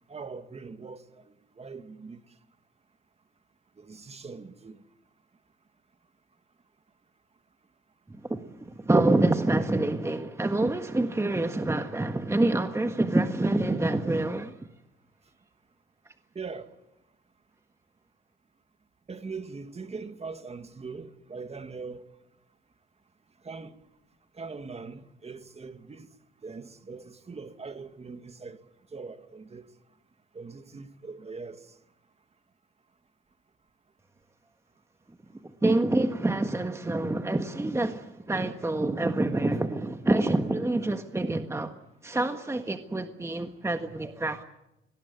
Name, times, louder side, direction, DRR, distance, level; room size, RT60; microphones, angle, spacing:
voice 1, 0.1-1.0 1.6-2.2 3.8-4.8 16.4-16.7 19.1-22.0 23.4-23.7 24.4-26.1 26.4-28.6 28.9-29.7 30.3-31.6, right 4 dB, 30° right, 2.1 m, -41 dB
voice 2, 8.1-14.6 35.6-41.7 42.0-44.4, right 2 dB, 15° right, 1.6 m, -26 dB
23.5 x 19.5 x 9.6 m
cardioid pair, 90°, 20 cm